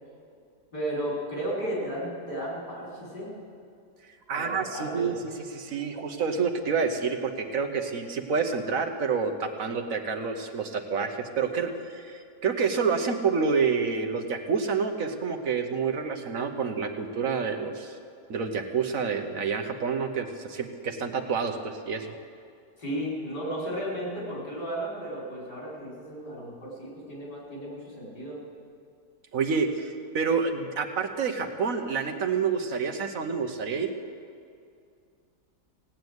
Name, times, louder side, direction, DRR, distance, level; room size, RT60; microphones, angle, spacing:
voice 1, 0.7-3.3 4.3-5.1 22.8-28.4, right 1 dB, 90° left, -5 dB, 5.7 m, -34 dB
voice 2, 4.3-5.1 5.5-18.0 18.3-22.1 29.3-33.9, right 5 dB, 60° right, 6 dB, 1.3 m, -28 dB
18.0 x 8.9 x 8.0 m, 2.4 s
omnidirectional pair, 1.7 m